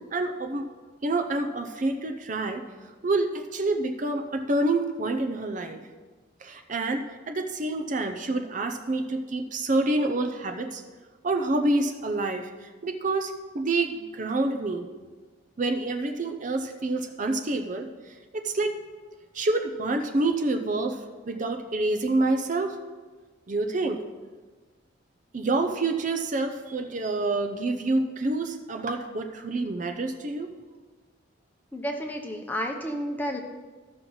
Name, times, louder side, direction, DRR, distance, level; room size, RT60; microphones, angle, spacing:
voice 1, 0.1-0.7 1.0-2.6 3.0-5.8 6.4-10.8 11.2-14.9 15.6-18.8 19.3-21.0 21.3-22.8 23.5-24.0 25.3-30.5, right 2 dB, 40° right, 6 dB, 0.6 m, -27 dB
voice 2, 31.7-33.4, equal, 10° left, 2 dB, 0.8 m, -31 dB
14.0 x 6.0 x 3.9 m, 1.4 s
head